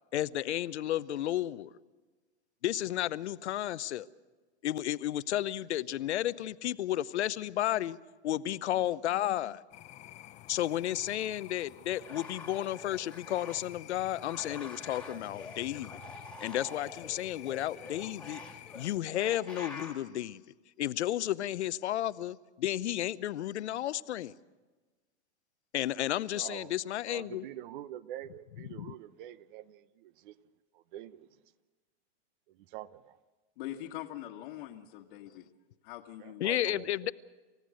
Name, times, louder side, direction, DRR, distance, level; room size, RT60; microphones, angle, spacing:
voice 1, 0.1-1.7 2.6-4.1 4.6-8.0 8.2-9.6 10.5-16.0 16.4-18.4 18.7-20.4 20.8-24.3 25.7-27.5 28.7-28.9 36.4-37.1, left 13 dB, 75° left, 0.8 m, -32 dB
sound 1, 9.7-19.0, left 14 dB, 20° left, 0.6 m, -50 dB
sound 2, 11.9-13.8 14.1-20.0, left 2 dB, 5° left, 2.2 m, -47 dB
voice 2, 26.3-26.7 27.1-30.4 30.7-31.3 32.5-33.2 36.2-36.9, right 12 dB, 50° right, 0.9 m, -45 dB
voice 3, 33.6-35.5 35.8-36.4, left 13 dB, 55° left, 1.6 m, -43 dB
28.0 x 15.5 x 6.4 m
hypercardioid pair, 140°, 34 cm